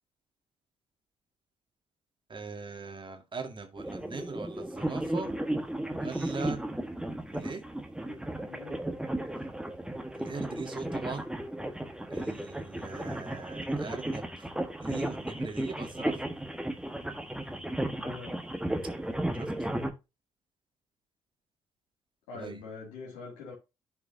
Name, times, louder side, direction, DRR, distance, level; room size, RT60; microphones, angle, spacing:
voice 1, 2.3-5.3 6.0-6.6 7.3-7.6 10.1-11.3 12.1-14.5 14.8-16.1 19.3-19.5 22.3-22.6, right 4 dB, 35° right, 2.0 m, -40 dB
sound 1, 3.8-19.9, right 1 dB, 5° right, 1.4 m, -34 dB
voice 2, 8.5-8.8 18.0-18.4 22.3-23.5, left 4 dB, 80° left, 2.5 m, -43 dB
11.5 x 4.8 x 2.8 m
hypercardioid pair, 45°, 14 cm